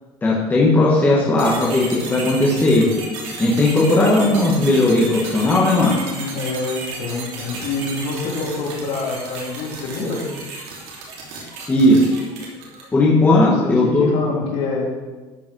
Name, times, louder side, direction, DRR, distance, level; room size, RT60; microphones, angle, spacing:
voice 1, 0.2-2.9 3.4-6.0 11.7-12.1 12.9-14.1, left 2 dB, 15° left, -4 dB, 1.5 m, -16 dB
sound 1, 1.4-13.0, right 3 dB, 65° right, 3.1 m, -34 dB
voice 2, 6.1-10.2 13.2-14.9, left 3 dB, 65° left, -2 dB, 3.0 m, -26 dB
13.0 x 5.3 x 6.2 m, 1.3 s
cardioid pair, 155°, 12 cm